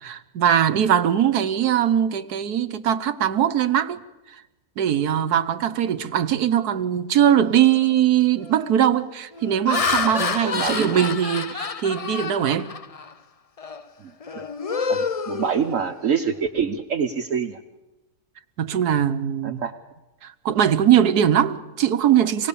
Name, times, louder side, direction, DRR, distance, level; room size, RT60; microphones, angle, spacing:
voice 1, 0.0-4.0 4.8-12.7 18.6-19.6 20.2-22.5, right 10 dB, 85° right, 1.5 m, -21 dB
Laughter, 7.6-7.8 8.4-8.7 9.3-13.1 13.6-13.8 14.2-16.1, left 5 dB, 35° left, 0.6 m, -28 dB
voice 2, 10.4-11.1 14.0-14.4 14.9-17.6 19.4-19.7 22.2-22.3, right 7 dB, 60° right, 1.3 m, -26 dB
26.0 x 19.0 x 7.0 m
omnidirectional pair, 1.6 m